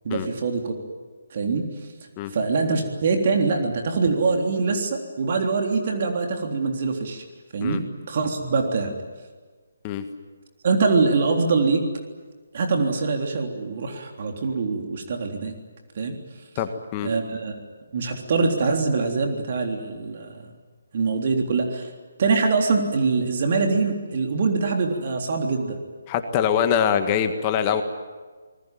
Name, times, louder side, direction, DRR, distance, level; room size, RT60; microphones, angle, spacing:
voice 1, 0.1-0.7 1.3-1.7 2.3-7.2 7.5-7.8 8.1-8.9 10.6-11.8 12.5-15.5 16.0-16.2 17.0-17.6 17.9-20.4 20.9-21.9 22.2-25.8, right 4 dB, 45° right, 3 dB, 3.5 m, -23 dB
voice 2, 16.6-17.1 26.1-27.8, left 8 dB, 25° left, 7 dB, 1.7 m, -23 dB
26.5 x 20.5 x 9.2 m, 1.4 s
figure-of-eight pair, 145°, 0 cm